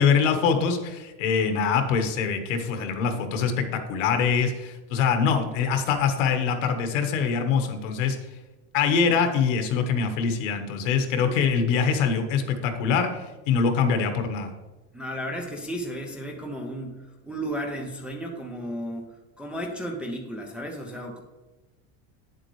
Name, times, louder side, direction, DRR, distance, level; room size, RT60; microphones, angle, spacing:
voice 1, 0.0-8.2 8.7-14.5, left 6 dB, 90° left, 6 dB, 1.4 m, -24 dB
voice 2, 14.9-19.1 19.4-21.2, equal, 5° right, 0 dB, 0.3 m, -34 dB
9.3 x 7.5 x 3.2 m, 1.1 s
cardioid pair, 165°, 37 cm